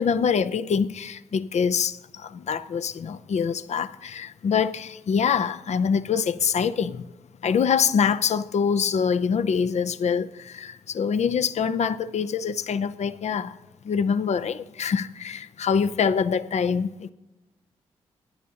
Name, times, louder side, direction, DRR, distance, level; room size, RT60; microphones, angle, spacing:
voice 1, 0.0-7.1 7.4-13.6 13.8-17.1, left 6 dB, 55° left, 0.6 m, -25 dB
24.5 x 10.5 x 2.9 m
hypercardioid pair, 40°, 13 cm